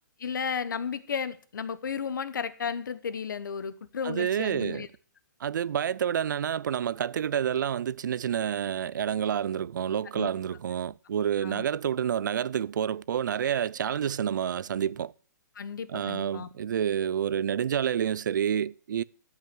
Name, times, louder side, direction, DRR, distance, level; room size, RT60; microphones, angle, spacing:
voice 1, 0.2-4.9 10.1-10.3 11.4-11.6 15.5-16.5, left 6 dB, 85° left, 1.0 m, -33 dB
voice 2, 4.0-4.9 5.4-15.1 15.9-19.0, right 9 dB, 75° right, 0.5 m, -29 dB
12.5 x 5.7 x 7.7 m
hypercardioid pair, 155°, 10 cm